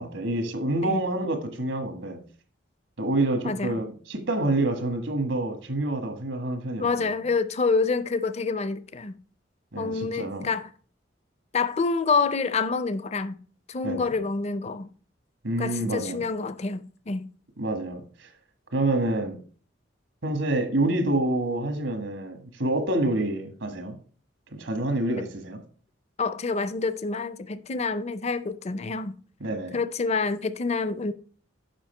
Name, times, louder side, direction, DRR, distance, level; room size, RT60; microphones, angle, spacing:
voice 1, 0.0-2.2 3.0-7.1 9.7-10.5 13.8-14.1 15.4-16.2 17.6-18.3 18.7-19.4 20.2-24.0 24.6-25.6 29.4-29.7, right 2 dB, 80° right, 1.5 m, -27 dB
voice 2, 6.8-9.2 9.8-10.7 11.5-13.4 13.7-14.9 15.6-17.3 25.2-25.3 26.2-29.1 29.7-31.1, left 4 dB, 35° left, 0.5 m, -27 dB
7.5 x 5.5 x 4.4 m
head